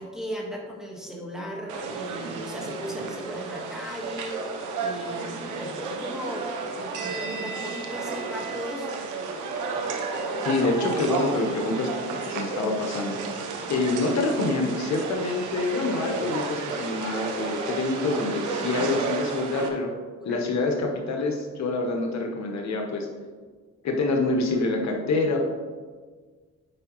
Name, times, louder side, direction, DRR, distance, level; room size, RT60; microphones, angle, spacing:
voice 1, 0.0-4.4 4.8-9.0 13.6-13.9 18.7-18.9 20.2-20.5, equal, ahead, -2 dB, 1.6 m, -37 dB
sound 1, 1.7-19.7, right 4 dB, 85° right, 0.9 m, -32 dB
voice 2, 10.4-13.2 13.7-19.9 20.2-23.1 23.8-25.4, left 3 dB, 65° left, 1 dB, 1.2 m, -26 dB
9.6 x 4.8 x 3.1 m, 1.5 s
cardioid pair, 90°, 30 cm